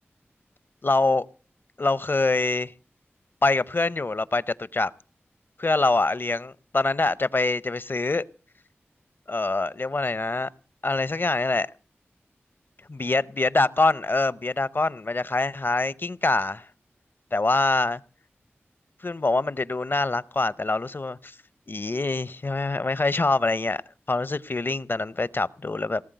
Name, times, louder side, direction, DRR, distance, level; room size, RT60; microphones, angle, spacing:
voice 1, 0.8-1.3 1.8-2.7 3.4-4.9 5.6-8.2 9.3-10.5 10.8-11.7 12.9-16.7 17.3-18.0 19.0-21.4 21.7-23.8 24.1-26.0, left 3 dB, 50° left, 0.6 m, -24 dB
18.5 x 7.3 x 9.1 m
cardioid pair, 40°, 5 cm